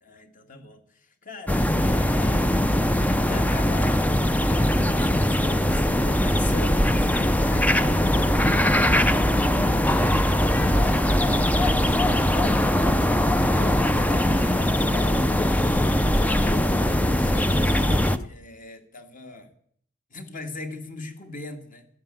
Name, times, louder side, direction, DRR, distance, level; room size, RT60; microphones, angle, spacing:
voice 1, 0.0-2.7 3.1-10.0 10.9-15.5 16.1-19.5 20.1-21.9, left 2 dB, 40° left, 1.9 m, -41 dB
sound 1, 1.5-18.2, left 1 dB, 5° left, 0.5 m, -21 dB
sound 2, 10.3-18.3, left 1 dB, 75° left, 1.2 m, -41 dB
13.0 x 11.0 x 8.8 m
head